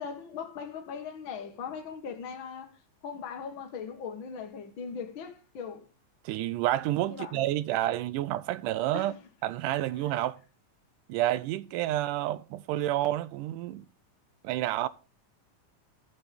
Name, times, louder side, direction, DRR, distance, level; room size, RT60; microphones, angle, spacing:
voice 1, 0.0-2.7 3.0-5.8 7.1-7.4 8.9-9.2 10.0-10.2, left 6 dB, 45° left, 1.9 m, -39 dB
voice 2, 6.3-9.1 9.4-10.4 11.1-13.9 14.4-14.9, right 14 dB, 80° right, 2.1 m, -29 dB
14.5 x 6.5 x 3.5 m
omnidirectional pair, 3.7 m